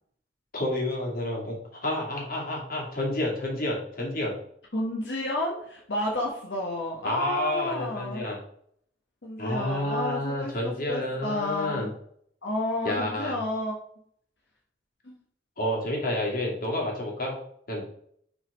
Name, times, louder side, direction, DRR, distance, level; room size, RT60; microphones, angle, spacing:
voice 1, 0.5-4.4 7.0-8.4 9.4-11.9 12.8-13.4 15.6-17.3 17.7-17.8, left 1 dB, 55° left, -3 dB, 2.5 m, -29 dB
voice 2, 4.7-8.2 9.2-11.9 12.4-13.7 15.0-15.2, left 1 dB, 85° left, -2 dB, 1.2 m, -31 dB
6.1 x 4.0 x 5.1 m, 0.65 s
head